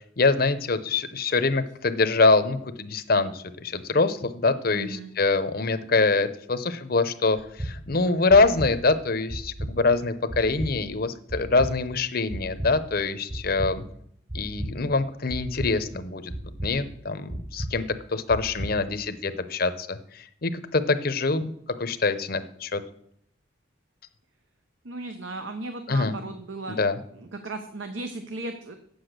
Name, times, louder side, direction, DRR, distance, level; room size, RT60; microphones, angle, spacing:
voice 1, 0.0-13.8 14.3-16.3 16.6-17.8 18.1-21.5 21.8-22.8 25.9-26.2 26.7-27.0, left 3 dB, 50° left, 11 dB, 0.7 m, -24 dB
voice 2, 4.7-5.1 24.8-26.8 27.1-28.8, right 2 dB, 75° right, 7 dB, 0.8 m, -36 dB
sound 1, 7.4-7.7 8.3-8.7 9.3-9.7 10.3-10.7 11.3-11.7 12.3-12.7 13.3-13.7 14.3-14.7 15.3-15.7 16.3-16.7 17.3-17.7 18.3-18.7, right 1 dB, 25° right, 1.1 m, -32 dB
8.3 x 8.0 x 6.6 m, 0.71 s
head